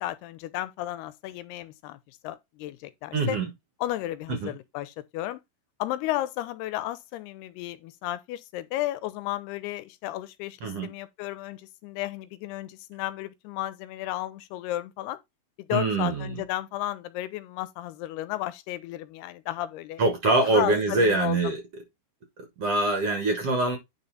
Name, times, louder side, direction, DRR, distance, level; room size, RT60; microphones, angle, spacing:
voice 1, 0.0-3.4 3.8-5.4 5.8-15.2 15.7-20.0 20.5-21.5, left 15 dB, 90° left, 2.7 m, -33 dB
voice 2, 3.1-3.5 4.3-4.5 10.6-10.9 15.7-16.4 20.0-21.6 22.4-23.8, right 2 dB, 55° right, 1.9 m, -24 dB
10.0 x 4.0 x 4.0 m
omnidirectional pair, 4.5 m